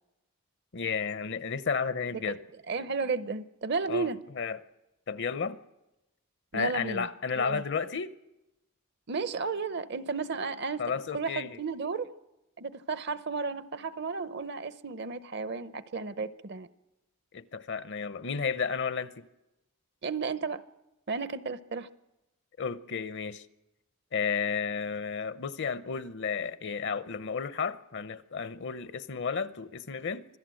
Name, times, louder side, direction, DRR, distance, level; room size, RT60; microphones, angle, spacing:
voice 1, 0.7-2.4 3.9-4.6 5.1-5.6 6.5-8.1 10.8-11.6 17.3-19.2 22.6-23.4 24.1-30.3, left 6 dB, 55° left, 0.7 m, -32 dB
voice 2, 2.7-4.2 6.5-7.1 7.4-7.6 9.1-12.2 12.6-16.7 20.0-20.6 21.1-21.9, right 4 dB, 50° right, 0.7 m, -33 dB
25.5 x 16.0 x 7.7 m
head